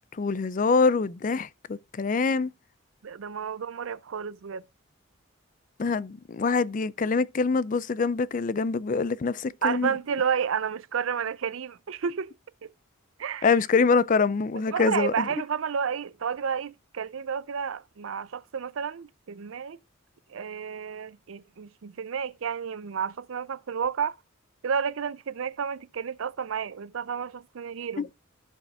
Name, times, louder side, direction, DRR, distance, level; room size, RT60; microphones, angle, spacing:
voice 1, 0.1-2.5 5.8-9.9 13.4-15.2 28.0-28.1, left 4 dB, 40° left, 0.4 m, -25 dB
voice 2, 3.0-4.6 9.6-12.3 13.2-13.5 14.7-19.8 20.3-24.1 24.6-28.1, right 7 dB, 75° right, 0.5 m, -31 dB
14.5 x 5.0 x 2.4 m
head